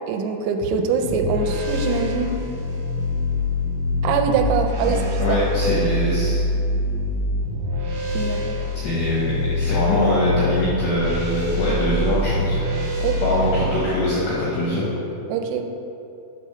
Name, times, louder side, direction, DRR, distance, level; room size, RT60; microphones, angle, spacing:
voice 1, 0.1-2.4 4.0-5.0 8.1-8.6 13.0-13.3 15.3-15.6, right 5 dB, 85° right, 5 dB, 3.2 m, -23 dB
sound 1, 1.0-13.8, left 1 dB, 65° right, 3.0 m, -25 dB
voice 2, 4.9-6.4 8.0-8.2 8.8-12.6 13.2-14.9, left 1 dB, 80° left, -8 dB, 2.3 m, -23 dB
7.7 x 3.1 x 5.6 m, 2.8 s
omnidirectional pair, 5.9 m